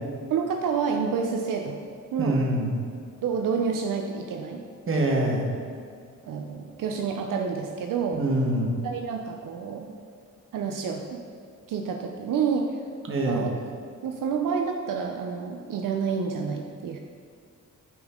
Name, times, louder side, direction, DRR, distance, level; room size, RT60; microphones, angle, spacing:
voice 1, 0.3-1.8 2.1-2.4 3.2-4.6 6.2-8.2 8.8-10.0 10.5-11.2 11.7-12.8 13.3-13.8 14.0-17.0, right 6 dB, 80° right, 3 dB, 0.6 m, -28 dB
voice 2, 2.2-2.7 4.9-5.5 8.1-8.7 13.1-13.5, right 1 dB, 40° right, -1 dB, 1.4 m, -24 dB
9.4 x 5.4 x 3.7 m, 2.2 s
wide cardioid pair, 130°, 32 cm